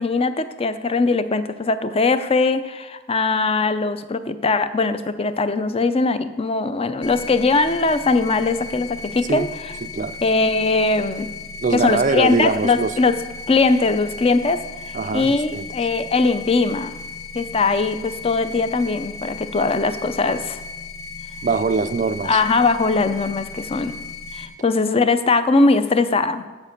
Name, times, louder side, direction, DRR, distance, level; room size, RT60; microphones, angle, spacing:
voice 1, 0.0-9.5 10.2-11.3 11.7-13.2 13.5-16.9 17.3-20.6 22.2-23.9 24.3-26.4, left 3 dB, 30° left, 0.5 m, -20 dB
sound 1, 7.0-24.5, left 4 dB, 75° left, 1.1 m, -36 dB
voice 2, 9.8-10.2 11.6-12.9 14.9-15.7 21.4-22.4, right 4 dB, 40° right, 0.4 m, -23 dB
7.5 x 7.3 x 6.5 m
head